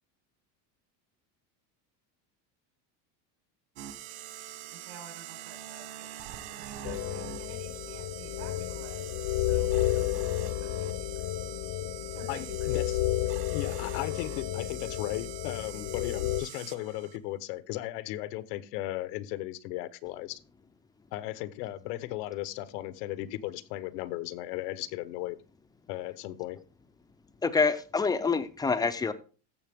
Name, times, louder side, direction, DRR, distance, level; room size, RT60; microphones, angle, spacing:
guitar screech, 3.8-17.2, right 12 dB, 50° right, 1.1 m, -44 dB
voice 1, 4.7-11.3 12.1-12.8, right 7 dB, 65° right, 5 dB, 4.5 m, -51 dB
sound 1, 6.8-16.4, left 15 dB, 60° left, 0.6 m, -32 dB
voice 2, 12.3-13.0 13.5-20.4 21.1-25.4 25.9-26.6, left 16 dB, 85° left, 15 dB, 1.0 m, -36 dB
voice 3, 27.4-29.1, left 4 dB, 10° left, 10 dB, 0.4 m, -26 dB
14.5 x 6.8 x 3.5 m, 0.35 s
cardioid pair, 155°, 47 cm